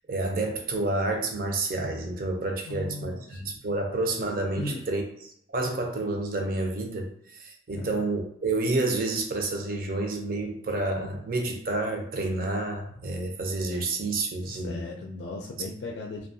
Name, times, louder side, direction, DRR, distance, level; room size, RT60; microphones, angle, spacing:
voice 1, 0.1-5.0 5.5-14.8, right 2 dB, 50° right, 3 dB, 0.5 m, -29 dB
voice 2, 2.6-3.4 4.6-4.9 7.8-8.0 14.4-16.3, left 2 dB, 70° left, 0 dB, 0.4 m, -37 dB
2.7 x 2.2 x 2.6 m, 0.69 s
head